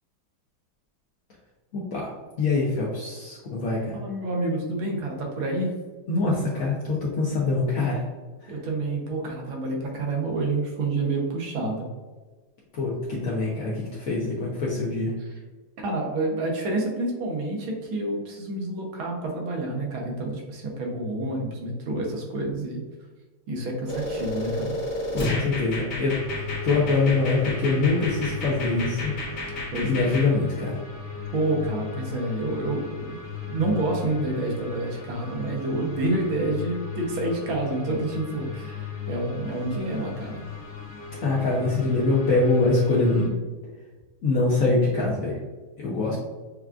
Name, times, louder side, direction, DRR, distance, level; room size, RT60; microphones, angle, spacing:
voice 1, 1.7-2.1 2.4-3.9 6.1-8.0 8.4-8.5 12.7-15.1 25.1-26.2 26.6-29.1 29.8-30.8 41.2-43.3 44.2-45.4 45.8-46.2, left 3 dB, 80° left, -4 dB, 0.7 m, -24 dB
voice 2, 3.9-5.7 8.5-11.9 15.2-15.3 15.8-22.8 23.5-24.8 29.7-30.1 31.3-33.2 33.4-40.4 46.1-46.2, right 2 dB, 75° right, 0 dB, 1.7 m, -28 dB
sound 1, 23.9-30.3, left 1 dB, 45° left, 1.0 m, -31 dB
sound 2, 26.1-43.3, left 6 dB, 60° left, 1.6 m, -36 dB
6.9 x 2.4 x 2.4 m, 1.3 s
omnidirectional pair, 2.3 m